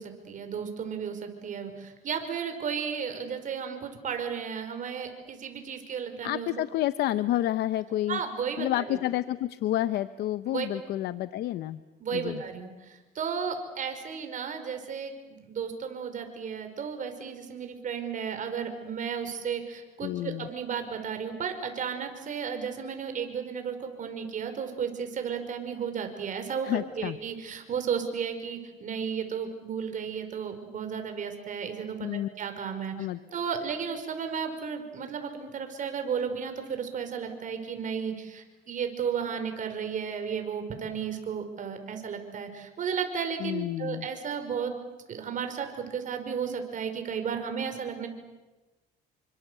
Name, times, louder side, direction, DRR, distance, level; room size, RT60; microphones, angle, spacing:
voice 1, 0.0-6.5 8.1-9.0 10.5-10.7 12.0-44.7 45.1-48.1, right 7 dB, 50° right, 7 dB, 5.5 m, -34 dB
voice 2, 6.2-8.2 8.6-11.8 12.1-12.4 20.0-20.5 26.6-27.2 32.0-32.3 33.0-33.2 43.4-44.1, left 13 dB, 75° left, 13 dB, 0.8 m, -29 dB
29.0 x 25.0 x 8.3 m, 1.1 s
cardioid pair, 110°, 17 cm